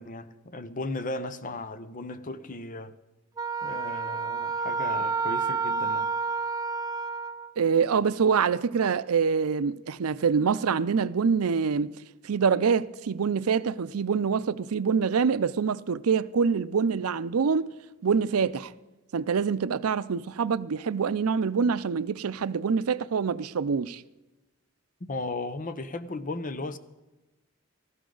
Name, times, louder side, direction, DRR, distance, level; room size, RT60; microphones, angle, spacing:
voice 1, 0.0-3.0 3.6-6.1 25.0-26.8, left 2 dB, 40° left, 0.8 m, -36 dB
Wind instrument woodwind instrument, 3.4-7.5, right 4 dB, 15° right, 0.4 m, -29 dB
voice 2, 7.6-12.0 12.2-17.7 18.0-18.7 19.1-24.0, right 6 dB, 90° right, 0.5 m, -25 dB
18.0 x 14.5 x 3.9 m
head